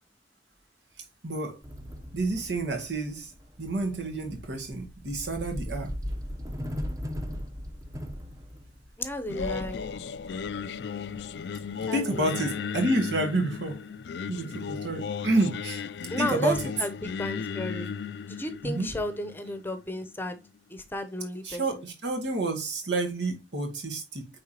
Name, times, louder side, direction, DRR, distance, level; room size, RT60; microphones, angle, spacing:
voice 1, 1.2-1.6 2.1-3.3 3.6-5.9 11.9-13.8 14.3-15.8 16.2-16.7 18.6-18.9 21.4-24.3, right 2 dB, 85° right, 2.0 m, -29 dB
sound 1, 1.6-11.8, equal, 20° right, 0.8 m, -39 dB
voice 2, 9.0-9.8 11.9-12.3 16.1-17.9 18.3-20.4 20.7-21.6, left 1 dB, 10° left, 0.8 m, -33 dB
Singing, 9.3-20.4, left 6 dB, 70° left, 0.4 m, -36 dB
9.3 x 3.7 x 2.9 m
head